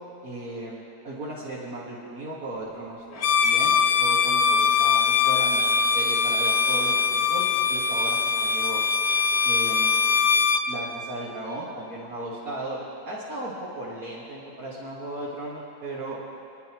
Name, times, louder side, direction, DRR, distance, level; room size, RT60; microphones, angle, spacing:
voice 1, 0.2-8.8 9.4-10.0 10.7-16.2, right 1 dB, 70° right, -8 dB, 2.2 m, -36 dB
Bowed string instrument, 3.2-10.7, left 5 dB, 60° left, 0.5 m, -22 dB
28.0 x 10.5 x 3.0 m, 2.6 s
omnidirectional pair, 1.6 m